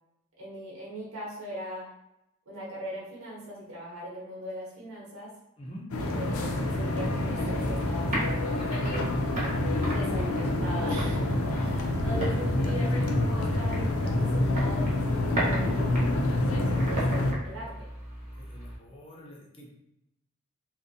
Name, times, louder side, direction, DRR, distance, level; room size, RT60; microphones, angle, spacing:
voice 1, 0.4-1.8 2.5-5.3 6.1-9.1 9.8-16.2 16.4-17.9, equal, 80° right, -5 dB, 0.9 m, -40 dB
voice 2, 5.6-5.9 18.4-19.7, equal, 25° left, -2 dB, 0.5 m, -46 dB
sound 1, 5.9-17.3, left 1 dB, 85° left, 0.4 m, -27 dB
sound 2, 7.3-18.8, right 1 dB, 35° right, 0.7 m, -37 dB
2.6 x 2.1 x 2.6 m, 0.84 s
head